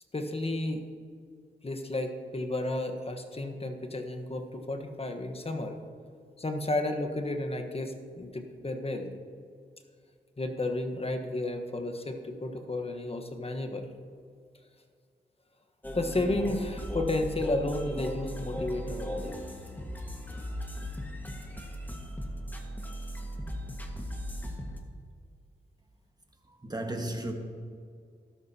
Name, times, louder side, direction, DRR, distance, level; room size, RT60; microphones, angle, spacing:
voice 1, 0.1-0.8 1.6-5.8 6.4-9.1 10.4-13.9 15.9-19.4, left 2 dB, 30° left, 1.2 m, -32 dB
sound 1, 15.8-24.8, equal, 10° left, 1.6 m, -37 dB
voice 2, 26.4-27.3, right 1 dB, 20° right, 1.6 m, -34 dB
13.0 x 12.0 x 2.9 m
cardioid pair, 55°, 19 cm